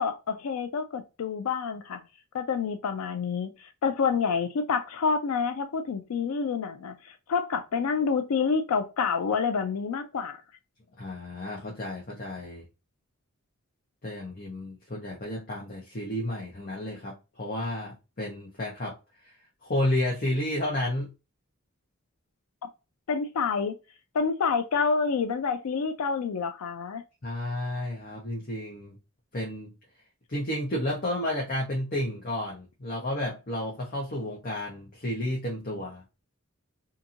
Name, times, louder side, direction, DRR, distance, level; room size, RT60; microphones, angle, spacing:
voice 1, 0.0-2.0 2.3-10.4 22.6-22.7 23.1-23.7 24.1-27.0, left 5 dB, 85° left, 0.4 m, -28 dB
voice 2, 11.0-12.7 14.0-19.0 19.2-19.3 19.6-21.1 27.2-29.0 29.3-29.7 30.3-36.0, left 1 dB, 40° left, 0.8 m, -31 dB
2.8 x 2.6 x 2.4 m
head